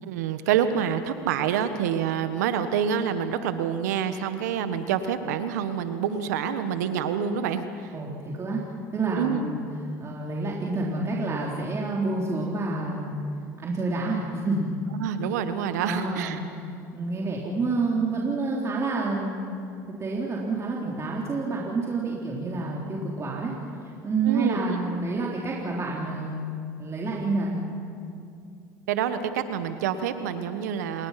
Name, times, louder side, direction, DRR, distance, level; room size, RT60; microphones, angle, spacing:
voice 1, 0.0-7.9 9.1-9.4 15.0-16.4 24.2-24.8 28.9-31.1, right 8 dB, 80° right, 10 dB, 1.5 m, -27 dB
voice 2, 7.9-8.6 8.9-9.6 10.0-13.1 13.6-14.7 15.8-16.4 16.9-19.5 20.0-23.5 24.0-26.4 26.8-27.6, right 3 dB, 30° right, -3 dB, 3.8 m, -28 dB
29.0 x 20.0 x 6.0 m, 2.4 s
hypercardioid pair, 80°, 9 cm